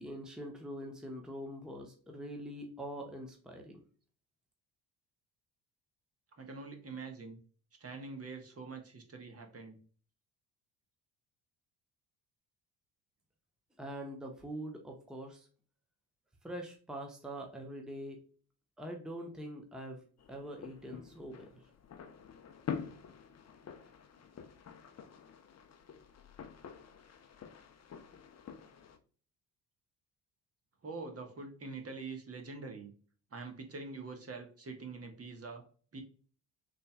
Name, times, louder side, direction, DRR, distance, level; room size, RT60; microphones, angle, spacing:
voice 1, 0.0-3.8 13.8-15.5 16.4-18.2 18.8-21.6, right 1 dB, ahead, 2 dB, 1.0 m, -44 dB
voice 2, 6.4-7.4 7.8-9.8 30.8-32.9 33.3-35.6 35.9-36.0, right 4 dB, 30° right, 4 dB, 1.4 m, -45 dB
sound 1, 20.2-29.0, left 7 dB, 35° left, 0.9 m, -47 dB
6.5 x 3.5 x 2.3 m, 0.41 s
figure-of-eight pair, 50°, 48 cm